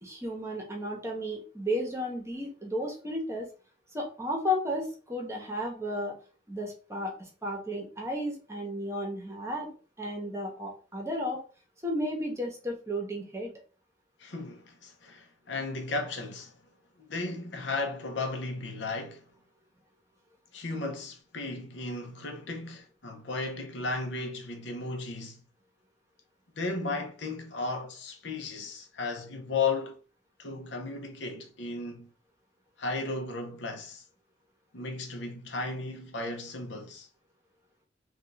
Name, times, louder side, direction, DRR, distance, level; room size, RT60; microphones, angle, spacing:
voice 1, 0.0-3.5 3.9-6.1 6.5-7.1 7.4-9.7 10.0-11.4 11.8-13.5, equal, 15° right, 1.0 m, -33 dB
voice 2, 14.2-16.6 17.0-19.2 20.5-25.4 26.6-30.0 30.4-32.1 32.8-34.1 34.7-37.1, left 3 dB, 65° left, 0.8 m, -35 dB
3.5 x 2.4 x 3.9 m
head